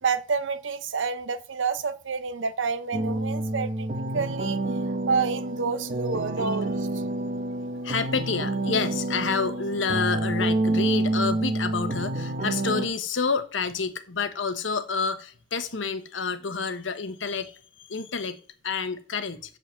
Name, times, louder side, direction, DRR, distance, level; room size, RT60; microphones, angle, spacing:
voice 1, 0.0-4.6 4.9-7.0, right 5 dB, 90° right, 0.8 m, -29 dB
sound 1, 2.9-12.9, right 2 dB, 45° right, 0.9 m, -28 dB
voice 2, 7.4-19.6, left 5 dB, 85° left, 1.0 m, -29 dB
6.7 x 5.3 x 7.1 m
head